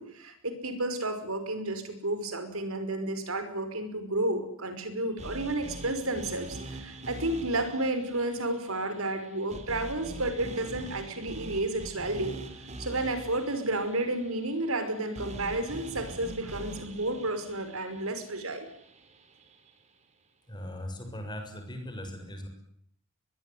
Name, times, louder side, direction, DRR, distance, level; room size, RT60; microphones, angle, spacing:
voice 1, 0.0-12.3 12.8-18.7, right 2 dB, 85° right, 9 dB, 5.4 m, -31 dB
sound 1, 5.2-19.3, right 1 dB, 35° right, 3.7 m, -44 dB
voice 2, 20.5-22.5, left 1 dB, 20° left, 5 dB, 7.1 m, -39 dB
24.5 x 21.5 x 9.4 m, 0.69 s
head